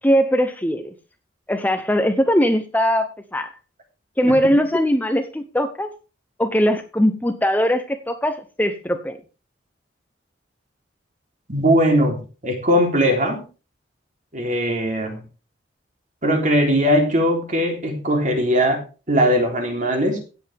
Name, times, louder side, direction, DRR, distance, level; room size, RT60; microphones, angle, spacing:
voice 1, 0.0-0.9 1.5-3.5 4.2-5.9 6.4-9.2, equal, 10° left, 7 dB, 0.8 m, -20 dB
voice 2, 11.5-13.4 14.3-15.2 16.2-18.8 19.1-20.2, equal, 45° right, 2 dB, 3.6 m, -19 dB
16.5 x 8.0 x 3.5 m, 0.33 s
head